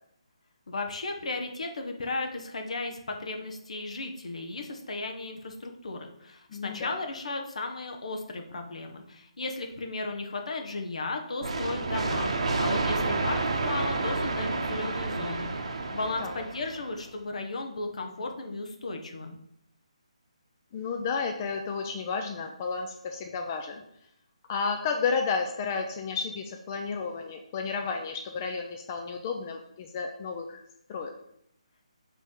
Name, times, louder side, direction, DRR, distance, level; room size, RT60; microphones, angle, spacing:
voice 1, 0.7-15.5 15.9-19.4, left 3 dB, 70° left, 4 dB, 1.1 m, -35 dB
voice 2, 6.5-7.0 16.2-16.3 20.7-23.8 24.5-30.6 30.9-31.2, left 5 dB, 30° left, 4 dB, 0.4 m, -32 dB
sound 1, 11.4-17.0, right 3 dB, 60° right, 0.9 m, -30 dB
5.3 x 3.4 x 5.3 m, 0.74 s
hypercardioid pair, 160°, 4 cm